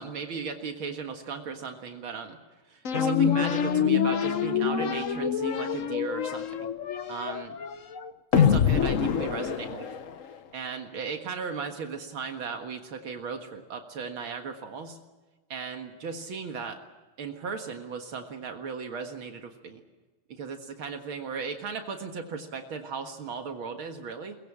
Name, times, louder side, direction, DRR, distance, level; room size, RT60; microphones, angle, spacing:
voice 1, 0.0-2.4 2.7-6.7 7.1-7.6 8.3-9.9 10.5-15.0 15.5-16.8 17.2-19.8 20.3-24.4, right 5 dB, 80° right, 5 dB, 2.5 m, -36 dB
sound 1, 2.8-10.3, left 7 dB, 50° left, 1.1 m, -26 dB
23.0 x 21.0 x 8.6 m, 1.2 s
omnidirectional pair, 2.3 m